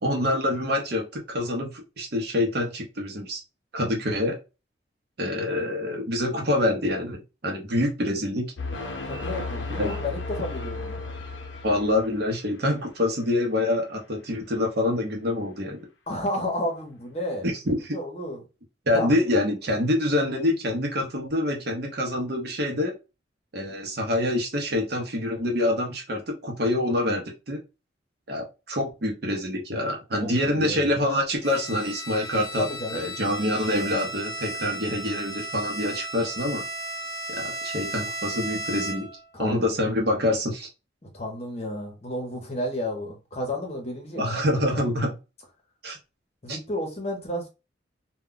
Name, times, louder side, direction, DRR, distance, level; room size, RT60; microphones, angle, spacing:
voice 1, 0.0-3.4 3.7-4.4 5.2-8.5 9.7-9.9 11.6-15.8 17.4-18.0 18.9-22.9 23.5-27.6 28.3-32.7 32.9-36.6 37.3-39.1 39.4-40.7 44.1-45.1 45.8-46.0 46.5-46.6, left 1 dB, 55° right, 0.7 m, -26 dB
sound 1, 8.6-12.4, left 3 dB, 70° left, 0.6 m, -34 dB
voice 2, 9.0-11.0 16.1-17.5 17.9-18.4 18.9-19.2 30.1-31.0 32.6-33.1 39.3-39.7 41.0-44.2 46.4-47.5, left 1 dB, 30° left, 0.8 m, -32 dB
Bowed string instrument, 31.4-39.2, right 1 dB, 15° left, 1.1 m, -35 dB
2.2 x 2.2 x 3.7 m
head